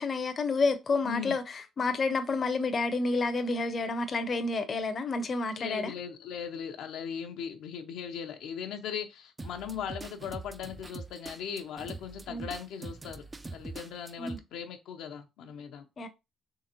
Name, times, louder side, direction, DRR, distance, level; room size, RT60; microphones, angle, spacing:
voice 1, 0.0-5.9 12.3-12.5 14.2-14.4 16.0-16.1, left 3 dB, 45° left, 0.6 m, -29 dB
voice 2, 1.0-1.4 5.6-13.2 13.5-15.9, left 7 dB, 85° left, 0.6 m, -39 dB
sound 1, 9.4-14.4, right 3 dB, 20° right, 0.3 m, -43 dB
3.7 x 3.2 x 2.9 m
cardioid pair, 90°, 0 cm